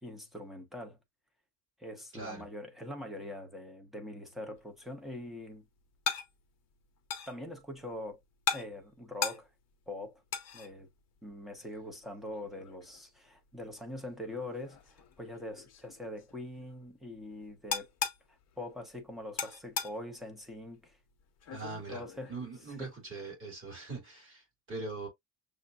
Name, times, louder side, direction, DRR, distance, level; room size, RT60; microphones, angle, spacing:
voice 1, 0.0-1.0 1.8-5.7 7.3-8.2 8.5-9.5 9.9-10.2 10.5-10.9 11.2-17.9 18.3-21.0 21.9-22.3 22.8-22.9, left 1 dB, ahead, 0.8 m, -43 dB
voice 2, 2.1-2.5 21.5-22.0 22.3-25.1, right 3 dB, 25° right, 2.9 m, -41 dB
sound 1, 4.6-23.1, left 7 dB, 35° left, 0.9 m, -42 dB
6.4 x 2.7 x 2.4 m
cardioid pair, 175°, 44 cm